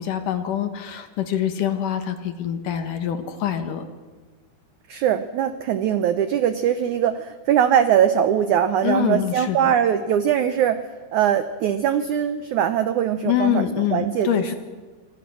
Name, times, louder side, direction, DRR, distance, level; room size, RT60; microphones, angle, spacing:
voice 1, 0.0-3.8 8.8-9.7 13.2-14.5, left 10 dB, 65° left, 8 dB, 2.5 m, -25 dB
voice 2, 4.9-10.8 11.1-13.7 13.9-14.5, right 9 dB, 85° right, 11 dB, 1.7 m, -21 dB
26.0 x 26.0 x 6.3 m, 1.4 s
omnidirectional pair, 4.7 m